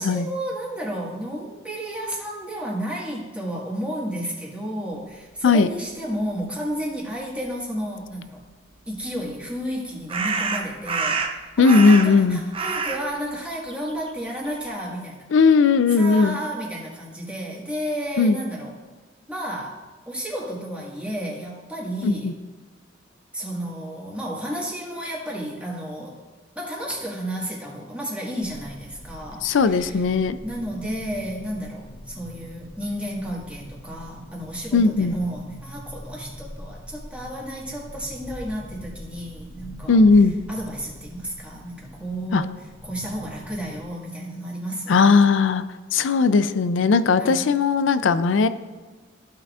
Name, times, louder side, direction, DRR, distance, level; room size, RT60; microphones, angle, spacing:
voice 1, 0.0-8.4 8.9-15.3 15.9-18.7 19.3-22.3 23.3-26.2 26.5-30.0 30.4-40.0 40.5-45.0 47.2-47.5, equal, 5° right, -4 dB, 1.6 m, -32 dB
sound 1, 9.0-9.1 10.1-12.3 12.5-14.7, right 4 dB, 30° right, 0.6 m, -27 dB
voice 2, 11.6-12.4 15.3-16.4 18.2-18.4 22.0-22.3 29.4-30.4 34.7-35.2 39.9-40.3 42.3-42.4 44.9-45.6 45.9-48.5, left 4 dB, 75° left, 13 dB, 0.4 m, -17 dB
sound 2, 28.4-43.9, equal, 30° left, 1.9 m, -43 dB
14.5 x 5.7 x 2.4 m, 1.3 s
head